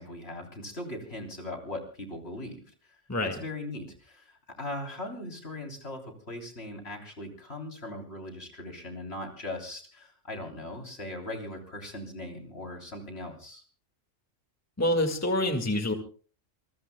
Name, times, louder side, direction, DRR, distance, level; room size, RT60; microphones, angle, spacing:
voice 1, 0.0-3.0 3.2-13.6, left 1 dB, 55° left, 2 dB, 3.8 m, -39 dB
voice 2, 14.8-15.9, left 1 dB, 10° left, 5 dB, 1.8 m, -26 dB
27.0 x 22.0 x 2.2 m, 0.40 s
omnidirectional pair, 1.3 m